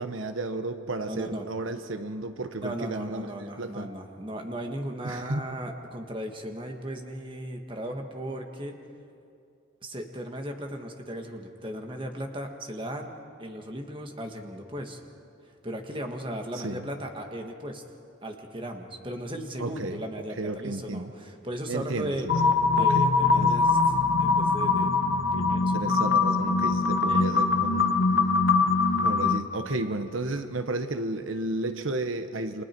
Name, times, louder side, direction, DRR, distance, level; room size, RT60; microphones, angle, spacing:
voice 1, 0.0-3.3 3.6-3.9 5.0-5.5 16.5-16.9 19.6-20.0 20.4-21.1 21.7-22.3 22.7-23.6 25.7-28.0 29.0-32.6, right 2 dB, 80° right, 8 dB, 1.0 m, -33 dB
voice 2, 1.0-1.5 2.6-8.8 9.8-13.1 13.4-15.1 15.6-17.8 18.2-22.3 22.7-23.9 24.2-24.9 25.3-26.0 27.1-27.4 30.3-30.4, right 1 dB, 25° right, 3 dB, 1.6 m, -36 dB
sound 1, 22.3-29.4, left 4 dB, 65° left, 1.1 m, -23 dB
29.5 x 25.0 x 4.5 m, 2.4 s
head